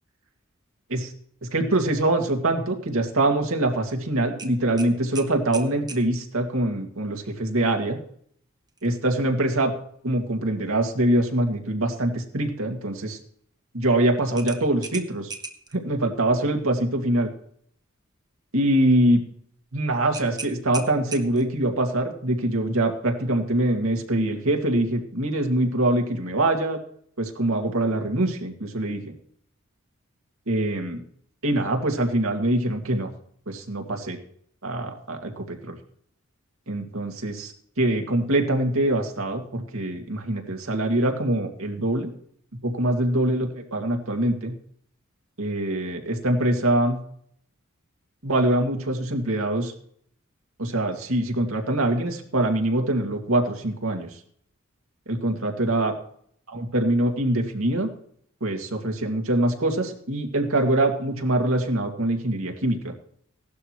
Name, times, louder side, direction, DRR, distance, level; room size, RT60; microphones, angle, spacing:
voice 1, 1.5-8.0 8.8-9.7 10.0-13.2 13.7-15.3 15.7-17.3 18.5-19.2 19.7-26.8 27.2-29.1 30.5-31.0 31.4-33.1 33.5-34.2 34.6-35.8 36.7-42.1 42.6-44.5 45.4-47.0 48.2-49.7 50.6-54.1 55.1-55.9 56.5-57.9 58.4-62.9, right 1 dB, 85° right, 3 dB, 2.2 m, -24 dB
sound 1, 4.4-6.1 8.7-8.9 9.3-9.4 14.4-15.7 20.1-21.6, right 4 dB, 20° right, 1.1 m, -38 dB
17.0 x 12.0 x 3.1 m, 0.63 s
head